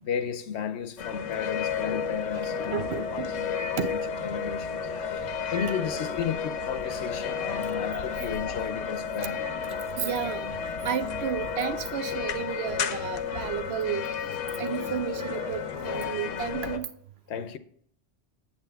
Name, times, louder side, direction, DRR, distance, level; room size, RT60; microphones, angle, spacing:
voice 1, 0.0-9.4 17.3-17.6, left 8 dB, 70° left, 0.9 m, -34 dB
sound 1, 1.0-16.8, left 7 dB, 90° left, 1.1 m, -33 dB
sound 2, 1.4-11.8, left 2 dB, 35° left, 0.8 m, -37 dB
voice 2, 2.7-3.5 3.8-3.9 10.0-10.5 10.8-14.0 14.6-16.9, right 9 dB, 65° right, 0.8 m, -32 dB
8.1 x 7.5 x 3.4 m
omnidirectional pair, 1.2 m